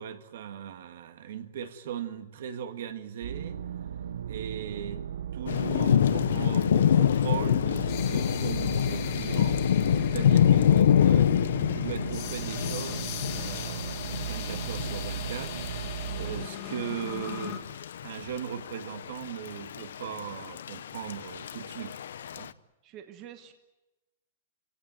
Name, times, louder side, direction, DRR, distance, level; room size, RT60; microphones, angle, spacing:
voice 1, 0.0-3.6 4.3-5.0 5.3-9.6 9.9-11.3 11.8-13.1 13.3-15.6 16.2-17.7 18.0-22.0 22.3-22.5, right 9 dB, 60° right, 9 dB, 1.8 m, -38 dB
sound 1, 3.2-16.5, right 9 dB, 90° right, 0.9 m, -37 dB
Thunder / Rain, 5.5-22.5, left 9 dB, 80° left, 0.8 m, -26 dB
sound 2, 7.0-17.6, left 10 dB, 35° left, 2.2 m, -41 dB
voice 2, 10.1-10.4 22.8-23.5, right 10 dB, 25° right, 7 dB, 1.2 m, -47 dB
28.5 x 17.5 x 9.2 m, 1.0 s
supercardioid pair, 175°, 0 cm